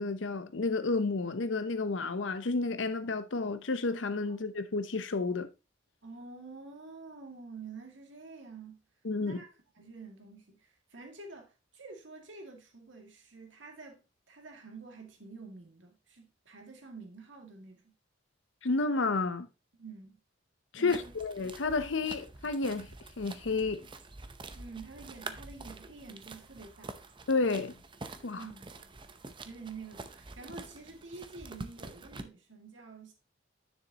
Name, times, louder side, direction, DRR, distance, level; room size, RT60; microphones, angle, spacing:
voice 1, 0.0-5.5 9.0-9.4 18.6-19.5 20.7-22.9 23.2-23.8 27.3-27.8 28.2-28.4, left 3 dB, 70° left, 0.8 m, -31 dB
voice 2, 6.0-8.8 9.2-14.0 14.3-17.9 19.8-20.2 20.8-21.1 24.6-27.0 28.3-28.6 29.4-33.1, right 4 dB, 70° right, 2.2 m, -48 dB
sound 1, 20.9-32.2, right 3 dB, 25° right, 0.7 m, -47 dB
9.9 x 6.5 x 2.9 m
head